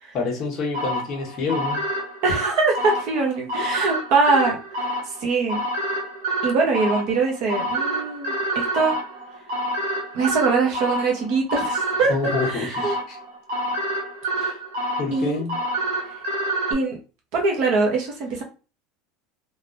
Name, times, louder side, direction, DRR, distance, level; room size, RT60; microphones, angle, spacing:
voice 1, 0.1-1.8 12.1-13.2 14.4-14.6 15.0-15.6, left 4 dB, 30° left, -1 dB, 1.0 m, -27 dB
sound 1, 0.7-16.7, right 1 dB, 75° right, 1.2 m, -28 dB
voice 2, 2.2-5.6 6.4-9.0 10.1-12.1 12.5-13.0 15.1-15.4 16.7-17.0 17.3-18.4, right 4 dB, 45° right, 1 dB, 0.8 m, -23 dB
3.3 x 2.4 x 2.6 m, 0.33 s
supercardioid pair, 175°, 0 cm